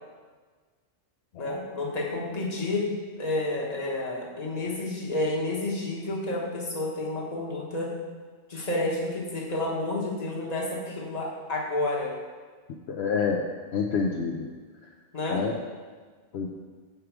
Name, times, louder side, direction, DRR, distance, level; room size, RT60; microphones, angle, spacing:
voice 1, 1.4-2.9 3.2-7.9 8.5-12.1 15.1-15.4, left 2 dB, 35° left, -3 dB, 1.3 m, -30 dB
voice 2, 12.9-13.4 13.7-14.5 15.3-15.5 16.3-16.5, left 5 dB, 70° left, 0 dB, 0.9 m, -27 dB
6.9 x 4.9 x 4.7 m, 1.5 s
omnidirectional pair, 1.2 m